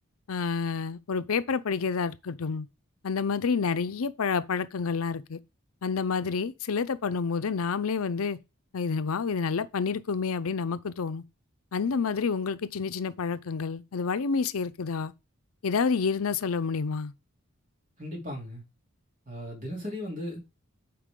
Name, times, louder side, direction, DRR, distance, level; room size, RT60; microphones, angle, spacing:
voice 1, 0.3-2.7 3.0-5.4 5.8-8.4 8.7-11.2 11.7-15.1 15.6-17.1, left 5 dB, 75° left, 0.6 m, -29 dB
voice 2, 18.0-18.6 19.3-20.4, left 1 dB, 40° right, 3.2 m, -36 dB
8.5 x 4.8 x 3.8 m
head